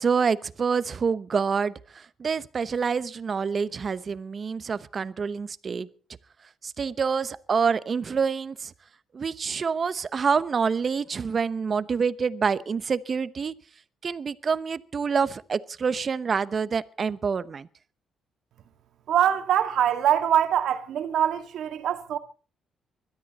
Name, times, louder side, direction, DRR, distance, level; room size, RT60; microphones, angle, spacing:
voice 1, 0.0-5.9 6.6-8.7 9.1-13.5 14.0-17.7, right 5 dB, 40° right, 0.9 m, -27 dB
voice 2, 19.1-22.2, right 10 dB, 75° right, 1.9 m, -23 dB
21.5 x 13.0 x 4.2 m
cardioid pair, 90°, 0 cm